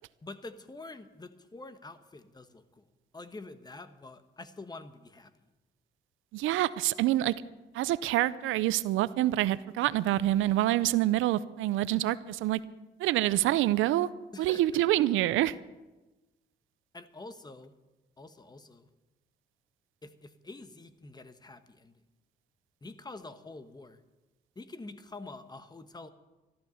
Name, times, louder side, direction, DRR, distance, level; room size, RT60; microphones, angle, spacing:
voice 1, 0.2-2.8 3.1-5.3 14.3-14.8 15.1-15.2 16.9-17.7 18.2-18.9 20.0-21.9 22.8-24.0 24.5-26.1, left 2 dB, 20° left, 11 dB, 1.1 m, -46 dB
voice 2, 6.3-7.3 7.7-12.6 13.0-14.1 14.4-15.6, right 14 dB, 90° right, 17 dB, 0.5 m, -26 dB
13.5 x 12.0 x 7.0 m, 1.1 s
cardioid pair, 90°, 20 cm